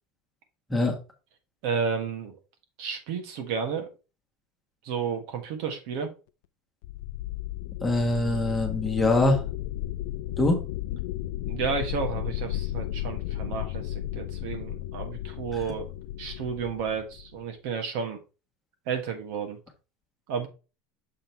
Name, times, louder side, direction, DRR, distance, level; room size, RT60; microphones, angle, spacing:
voice 1, 1.6-2.3 2.8-3.9 4.8-6.1 11.4-15.9 16.2-18.2 18.9-19.6 20.3-20.5, right 6 dB, 60° right, 5 dB, 1.5 m, -32 dB
sound 1, 6.8-17.4, left 14 dB, 75° left, 0.4 m, -34 dB
voice 2, 7.8-9.4 10.4-10.6, left 2 dB, 5° left, 0 dB, 1.4 m, -23 dB
6.7 x 3.8 x 4.4 m, 0.31 s
supercardioid pair, 165°, 0 cm